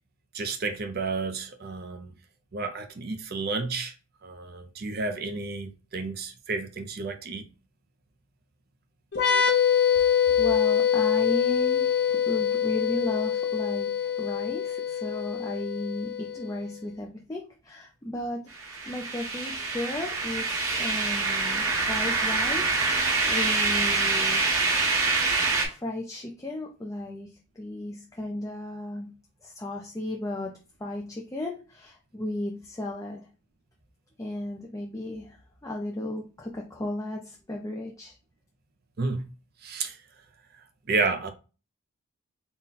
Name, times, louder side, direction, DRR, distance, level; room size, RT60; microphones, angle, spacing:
voice 1, 0.3-2.1 2.5-3.9 4.2-7.5 39.0-39.2 39.6-40.0 40.9-41.3, right 3 dB, 45° right, 0.5 m, -31 dB
sound 1, 9.1-16.6, left 8 dB, 50° left, 0.7 m, -25 dB
voice 2, 10.0-18.4 18.9-24.5 25.6-29.1 29.4-30.5 30.8-33.3 34.2-38.2, left 1 dB, 15° left, 0.4 m, -35 dB
sound 2, 18.5-25.7, right 3 dB, 70° right, 1.2 m, -26 dB
3.9 x 2.2 x 3.9 m
head